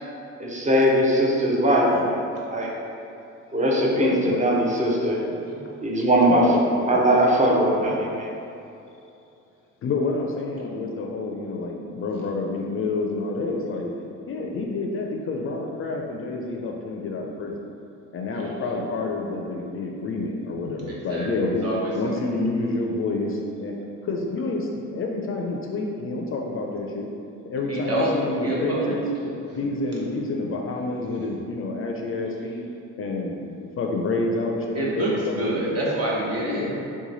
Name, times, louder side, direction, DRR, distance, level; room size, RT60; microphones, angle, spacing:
voice 1, 0.4-2.2 2.5-2.7 3.5-5.2 5.8-6.4 6.9-8.3, right 1 dB, 25° right, -2 dB, 0.6 m, -20 dB
voice 2, 3.9-4.5 6.3-7.0 7.8-8.0 9.8-13.9 14.3-17.5 18.1-21.7 21.9-23.8 24.0-27.1 27.5-29.0 29.5-32.6 33.0-35.7 36.4-36.7, left 3 dB, 45° left, 0 dB, 0.4 m, -28 dB
voice 3, 5.3-5.6 18.3-18.7 20.9-21.3 21.6-22.1 27.7-28.1 28.4-29.0 34.7-36.7, right 1 dB, 55° right, -5 dB, 0.9 m, -27 dB
3.0 x 2.2 x 3.9 m, 2.7 s
cardioid pair, 90°, 30 cm